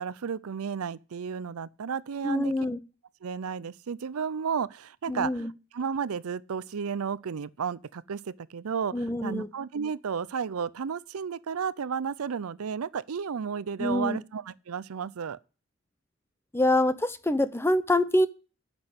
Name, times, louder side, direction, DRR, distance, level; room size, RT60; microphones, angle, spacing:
voice 1, 0.0-2.5 3.2-5.5 5.7-15.4, right 6 dB, 85° right, 0.5 m, -33 dB
voice 2, 2.2-2.8 5.1-5.5 8.9-9.5 13.8-14.2 16.5-18.3, left 1 dB, 10° left, 0.6 m, -25 dB
9.7 x 6.1 x 7.9 m
head